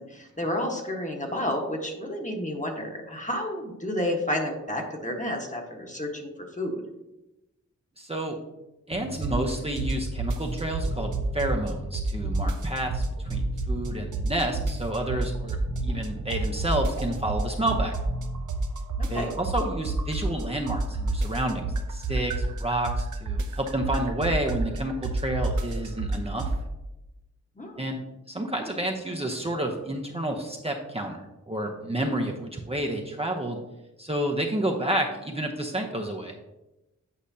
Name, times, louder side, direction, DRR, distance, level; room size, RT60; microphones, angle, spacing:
voice 1, 0.0-6.3 6.6-6.8 19.0-19.3 27.6-27.8, left 1 dB, 25° left, 2 dB, 1.3 m, -31 dB
voice 2, 8.0-8.4 8.9-17.9 19.1-26.5 27.8-28.0 28.3-33.6 34.0-36.3, right 1 dB, 20° right, 1 dB, 0.8 m, -30 dB
Bass guitar, 8.9-10.2 10.4-12.6 12.8-15.0 15.2-17.4 17.6-18.5, right 2 dB, 50° right, 1.0 m, -37 dB
sound 1, 9.2-9.5 9.8-11.7 11.9-13.9 14.1-16.1 16.3-20.4 20.7-26.6, right 2 dB, 85° right, 0.6 m, -28 dB
8.5 x 4.9 x 2.8 m, 0.97 s
cardioid pair, 60°, 30 cm